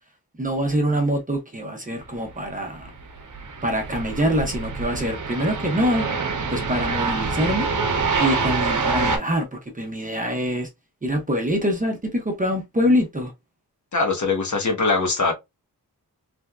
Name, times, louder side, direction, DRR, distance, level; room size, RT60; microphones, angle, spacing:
voice 1, 0.4-2.9 3.6-6.1 6.5-7.7 8.2-9.5 9.7-10.7 11.0-13.3, equal, 20° right, 0.8 m, -24 dB
sound 1, 2.5-9.2, right 4 dB, 55° right, 0.9 m, -26 dB
voice 2, 13.9-15.3, left 3 dB, 50° left, 1.3 m, -22 dB
3.4 x 2.7 x 2.2 m
wide cardioid pair, 160°, 37 cm